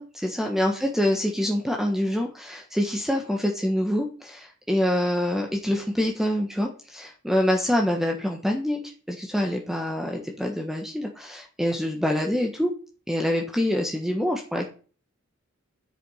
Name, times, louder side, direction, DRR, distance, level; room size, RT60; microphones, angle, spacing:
voice 1, 0.0-8.8 9.1-12.7 13.1-14.7, left 1 dB, ahead, 2 dB, 1.3 m, -26 dB
10.5 x 7.9 x 5.7 m, 0.38 s
head